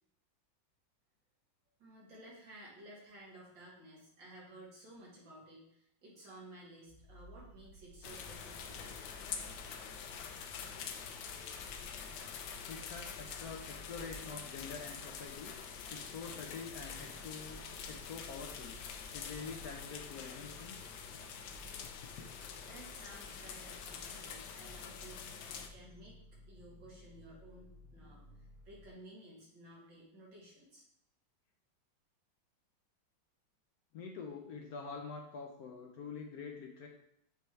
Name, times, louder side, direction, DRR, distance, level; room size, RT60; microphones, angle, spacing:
voice 1, 1.8-9.0 22.6-26.2 26.5-30.8, right 1 dB, 75° right, -4 dB, 2.7 m, -55 dB
sound 1, 6.8-26.1, right 1 dB, 30° left, 2.2 m, -58 dB
sound 2, 8.0-25.7, left 7 dB, 90° left, 1.4 m, -46 dB
voice 2, 12.7-15.5 15.9-21.2 21.8-22.3 33.9-36.9, left 5 dB, 70° left, 2 dB, 0.9 m, -46 dB
sound 3, 16.2-28.9, left 1 dB, 55° right, 1.6 m, -58 dB
6.8 x 3.3 x 4.4 m, 0.72 s
omnidirectional pair, 2.1 m